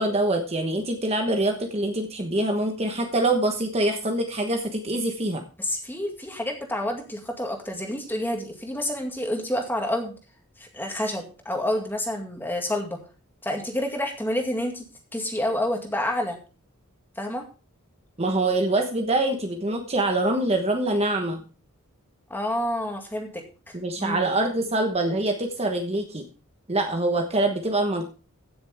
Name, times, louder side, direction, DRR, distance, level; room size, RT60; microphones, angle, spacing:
voice 1, 0.0-5.4 18.2-21.4 23.7-26.2 26.7-28.1, right 2 dB, 30° right, 4 dB, 1.2 m, -25 dB
voice 2, 5.6-10.1 10.6-13.0 13.4-16.4 17.2-17.5 22.3-24.2, left 1 dB, 10° left, 2 dB, 2.1 m, -29 dB
15.5 x 6.9 x 3.5 m, 0.34 s
head